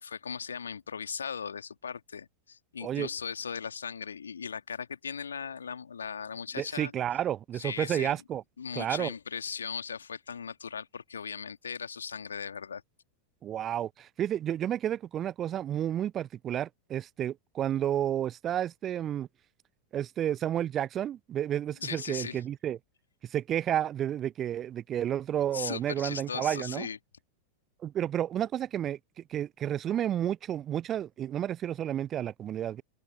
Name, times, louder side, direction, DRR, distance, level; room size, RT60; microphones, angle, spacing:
voice 1, 0.0-6.9 7.5-8.2 8.6-12.8 21.8-22.4 25.5-27.0, left 6 dB, 70° left, 2.5 m, -38 dB
voice 2, 6.6-8.4 8.7-9.1 13.4-19.3 19.9-22.8 23.2-26.9 27.8-29.0 29.3-32.8, right 10 dB, 30° right, 0.7 m, -31 dB
figure-of-eight pair, 90°, 0 cm